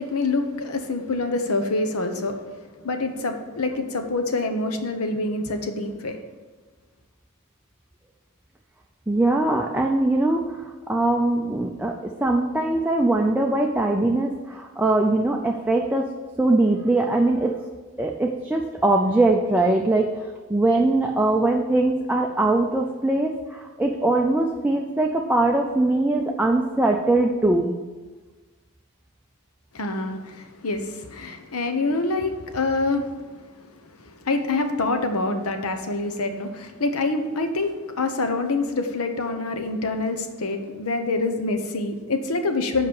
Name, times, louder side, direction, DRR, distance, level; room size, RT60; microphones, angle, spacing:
voice 1, 0.0-2.4 2.8-6.2 29.7-33.1 33.6-42.9, left 3 dB, 75° left, 6 dB, 1.0 m, -26 dB
voice 2, 9.1-16.1 16.4-17.5 18.0-20.1 20.5-27.7, right 2 dB, 5° right, 0 dB, 0.5 m, -21 dB
7.9 x 5.2 x 7.0 m, 1.3 s
head